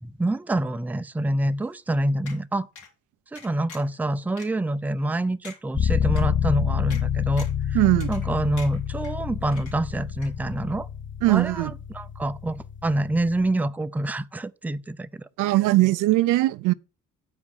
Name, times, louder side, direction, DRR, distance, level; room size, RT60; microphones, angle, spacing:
voice 1, 0.0-2.7 3.3-7.8 8.1-10.9 11.3-15.3, right 1 dB, 5° right, 0.4 m, -27 dB
sound 1, 2.3-2.4 2.8-2.9 3.4-4.0 4.4-4.5 5.0-5.1 5.4-5.6 6.2-6.3 6.9-7.0 7.4-7.6 8.0-8.3 8.6-9.1 9.5-10.0 10.2-10.3, left 5 dB, 75° left, 2.6 m, -44 dB
sound 2, 5.7-13.5, left 9 dB, 40° left, 0.8 m, -27 dB
voice 2, 7.7-8.1 11.2-11.7 15.4-16.7, right 18 dB, 90° right, 0.5 m, -20 dB
8.5 x 4.9 x 5.3 m
cardioid pair, 90°, 30 cm